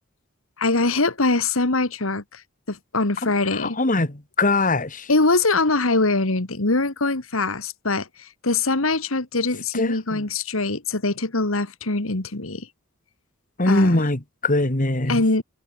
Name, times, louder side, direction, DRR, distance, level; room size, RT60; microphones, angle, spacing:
voice 1, 0.6-2.4 2.7-3.8 5.1-12.7 13.7-14.0 15.1-15.4, left 3 dB, 85° left, 2.2 m, -23 dB
voice 2, 3.2-5.1 9.7-10.2 13.6-15.2, left 2 dB, 40° left, 2.3 m, -22 dB
head